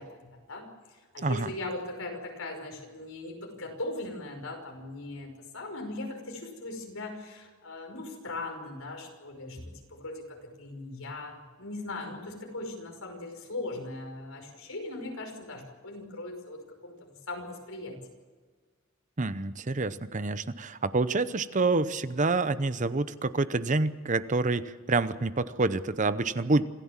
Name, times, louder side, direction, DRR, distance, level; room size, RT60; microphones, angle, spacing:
voice 1, 0.0-18.0, left 2 dB, 75° left, 3 dB, 5.5 m, -39 dB
voice 2, 1.2-1.5 19.2-26.6, right 3 dB, 35° right, 14 dB, 0.7 m, -27 dB
27.0 x 15.0 x 7.4 m, 1.5 s
head